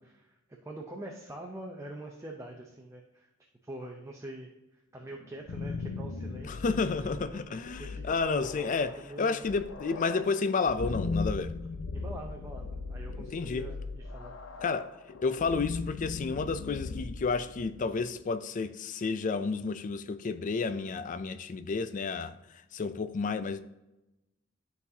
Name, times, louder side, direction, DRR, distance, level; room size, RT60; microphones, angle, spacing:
voice 1, 0.0-3.3 3.6-8.5 9.0-9.5 11.9-14.3, right 1 dB, 15° right, 0.6 m, -44 dB
sound 1, 5.2-18.1, left 3 dB, 85° left, 0.6 m, -38 dB
voice 2, 6.4-11.5 13.3-13.6 14.6-14.9 15.2-22.4 22.7-23.6, left 4 dB, 40° left, 0.4 m, -31 dB
12.0 x 4.1 x 2.7 m
head